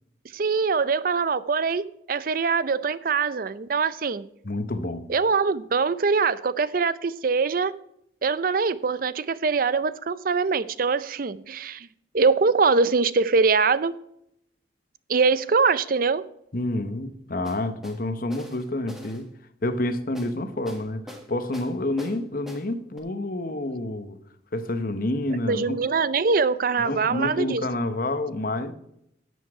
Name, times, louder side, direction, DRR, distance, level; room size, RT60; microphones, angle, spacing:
voice 1, 0.3-4.2 5.1-7.7 8.2-11.9 12.1-13.9 15.1-16.2 25.5-27.6, right 4 dB, 50° right, 0.5 m, -23 dB
voice 2, 4.4-5.1 16.5-19.3 19.6-24.2 24.5-25.8 26.8-28.7, left 1 dB, 50° left, 1.0 m, -28 dB
sound 1, 17.4-18.0 18.3-19.2 20.1-20.3 20.7-21.3 21.5-22.2 22.5-22.6 23.0-23.1, left 1 dB, ahead, 1.6 m, -42 dB
11.5 x 8.2 x 4.7 m
head